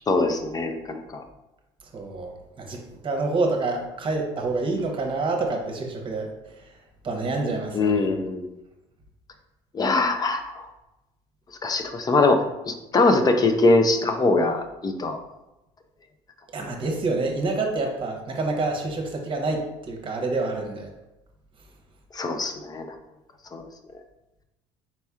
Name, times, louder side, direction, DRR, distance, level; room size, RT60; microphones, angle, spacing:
voice 1, 0.1-1.2 7.7-8.5 9.7-10.7 11.6-15.2 22.1-23.0 23.5-23.6, left 3 dB, 25° left, 6 dB, 0.6 m, -22 dB
voice 2, 1.9-6.3 7.0-8.1 16.5-20.9, right 3 dB, 35° right, 3 dB, 1.0 m, -27 dB
4.3 x 4.1 x 2.4 m, 0.96 s
supercardioid pair, 80°, 14 cm